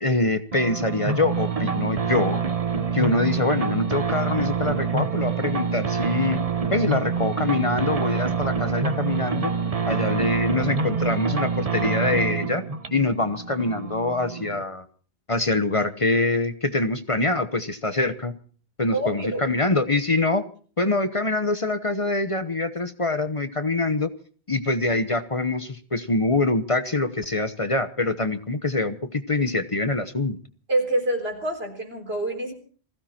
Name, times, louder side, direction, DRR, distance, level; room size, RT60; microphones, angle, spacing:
voice 1, 0.0-2.4 2.9-6.4 6.7-9.5 9.9-12.6 12.9-14.8 15.3-18.3 18.8-20.5 20.8-24.1 24.5-30.4, left 2 dB, 35° left, 10 dB, 1.0 m, -24 dB
sound 1, 0.5-14.6, right 5 dB, 35° right, 1.2 m, -26 dB
voice 2, 18.9-19.5 30.7-32.5, right 1 dB, 80° right, 3 dB, 4.3 m, -26 dB
20.5 x 15.5 x 4.4 m, 0.43 s
omnidirectional pair, 1.0 m